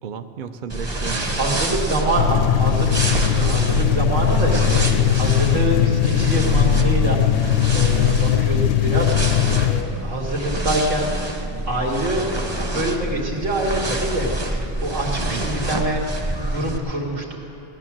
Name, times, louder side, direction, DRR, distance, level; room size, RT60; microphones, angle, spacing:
voice 1, 0.0-3.0 5.6-5.7 10.5-10.6 15.1-15.6, right 6 dB, 50° right, 8 dB, 0.7 m, -35 dB
sound 1, 0.7-16.8, right 1 dB, 25° right, 1.1 m, -26 dB
voice 2, 1.3-11.1 11.6-17.4, right 1 dB, 80° right, -2 dB, 2.5 m, -25 dB
sound 2, 2.2-9.8, left 11 dB, 80° left, 0.9 m, -19 dB
17.5 x 11.0 x 7.4 m, 2.9 s
omnidirectional pair, 1.3 m